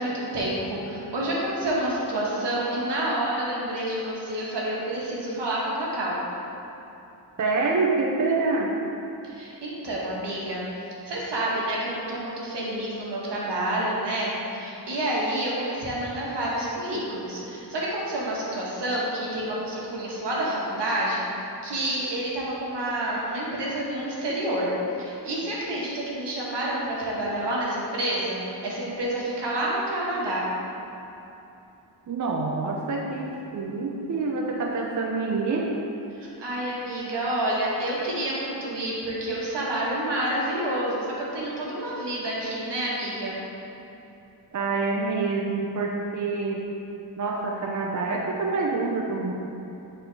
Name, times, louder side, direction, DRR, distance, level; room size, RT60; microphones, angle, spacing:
voice 1, 0.0-6.2 9.2-10.6 11.1-21.2 21.6-24.7 25.0-30.4 36.2-43.4, right 1 dB, 85° right, -5 dB, 1.5 m, -28 dB
voice 2, 7.4-8.7 32.1-35.7 44.5-46.6 47.2-49.3, right 3 dB, 45° right, -1 dB, 0.6 m, -26 dB
8.6 x 4.1 x 3.4 m, 2.9 s
cardioid pair, 80°, 41 cm